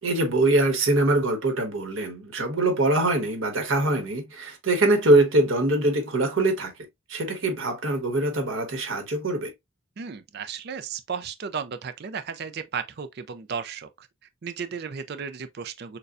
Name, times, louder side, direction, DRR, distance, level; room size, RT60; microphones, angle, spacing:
voice 1, 0.0-6.7 7.1-9.5, right 2 dB, 75° right, 1.3 m, -23 dB
voice 2, 10.0-14.1 14.4-16.0, right 6 dB, 50° right, 0.4 m, -34 dB
6.5 x 2.2 x 2.5 m
head